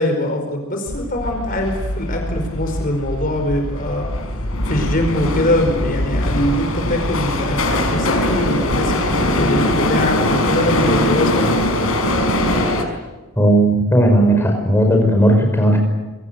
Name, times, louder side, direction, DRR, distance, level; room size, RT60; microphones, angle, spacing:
voice 1, 0.0-4.1 4.7-11.7, left 1 dB, 40° left, 4 dB, 4.8 m, -22 dB
sound 1, 0.9-12.8, left 1 dB, 65° left, 5.6 m, -21 dB
voice 2, 13.4-15.8, right 1 dB, 10° left, 2 dB, 5.6 m, -15 dB
27.0 x 23.5 x 8.0 m, 1.2 s
head